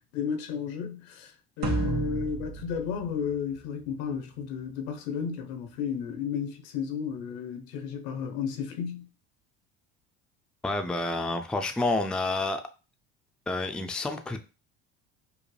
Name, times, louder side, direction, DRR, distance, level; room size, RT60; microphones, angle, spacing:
voice 1, 0.1-1.3 1.6-9.1, left 7 dB, 85° left, 0.9 m, -33 dB
sound 1, 1.6-4.1, right 3 dB, 60° right, 1.7 m, -33 dB
voice 2, 10.6-12.6 13.5-14.4, left 2 dB, 5° left, 0.4 m, -29 dB
5.0 x 2.2 x 3.2 m
supercardioid pair, 105°, 31 cm